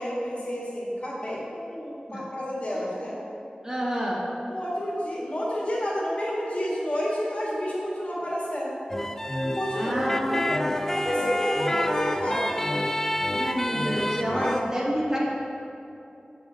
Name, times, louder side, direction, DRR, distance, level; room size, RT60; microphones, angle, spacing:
voice 1, 0.0-3.2 4.5-8.8 9.5-10.1 10.5-10.7 10.9-12.7 14.3-14.5, equal, 45° left, -6 dB, 1.9 m, -30 dB
voice 2, 3.6-4.2 9.7-10.4 13.3-15.2, equal, 20° right, -6 dB, 2.2 m, -28 dB
sound 1, 8.9-14.6, left 1 dB, 15° left, 0.4 m, -28 dB
7.8 x 5.3 x 6.3 m, 2.8 s
wide cardioid pair, 65°, 3 cm